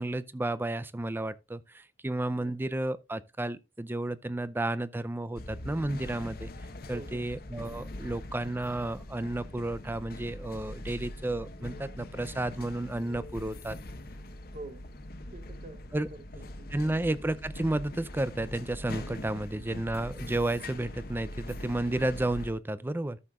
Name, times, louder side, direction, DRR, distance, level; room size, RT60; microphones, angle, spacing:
voice 1, 0.0-6.5 6.9-13.8 15.9-16.1 16.7-23.2, right 1 dB, 10° right, 0.5 m, -32 dB
voice 2, 2.3-2.8 6.9-7.3 14.5-14.8 15.3-15.8 16.1-17.0, right 2 dB, 45° right, 0.9 m, -47 dB
sound 1, 5.4-22.5, left 1 dB, 60° left, 1.0 m, -42 dB
13.5 x 6.7 x 2.4 m
head